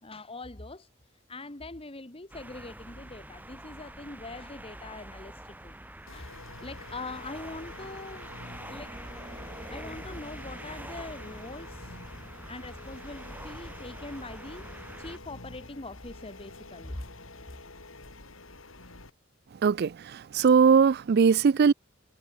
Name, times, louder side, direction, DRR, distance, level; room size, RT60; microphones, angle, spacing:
voice 1, 0.0-5.8 6.1-8.3 8.7-9.0 9.7-12.0 12.5-17.0, left 2 dB, 30° left, 1.7 m, -43 dB
sound 1, 2.3-15.2, right 1 dB, 10° right, 3.0 m, -45 dB
sound 2, 6.1-19.1, left 2 dB, 85° left, 5.3 m, -47 dB
voice 2, 19.6-21.7, right 6 dB, 55° right, 0.4 m, -20 dB
head